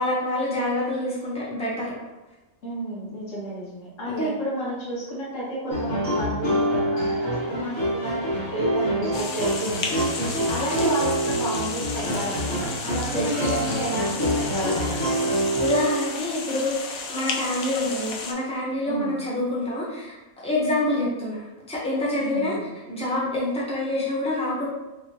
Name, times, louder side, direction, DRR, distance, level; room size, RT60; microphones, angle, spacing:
voice 1, 0.0-1.9 4.1-4.3 10.2-10.4 13.1-13.4 15.6-20.1 20.4-21.4 21.7-22.6 22.9-24.7, left 1 dB, 5° left, -7 dB, 0.9 m, -26 dB
voice 2, 2.6-10.0 10.5-15.1 18.9-19.1 22.2-22.6, right 1 dB, 70° left, -6 dB, 1.7 m, -31 dB
sound 1, 5.7-16.1, right 1 dB, 20° left, 1.3 m, -26 dB
sound 2, 9.1-18.3, left 4 dB, 90° left, 1.1 m, -33 dB
3.4 x 3.3 x 2.9 m, 1.1 s
omnidirectional pair, 1.4 m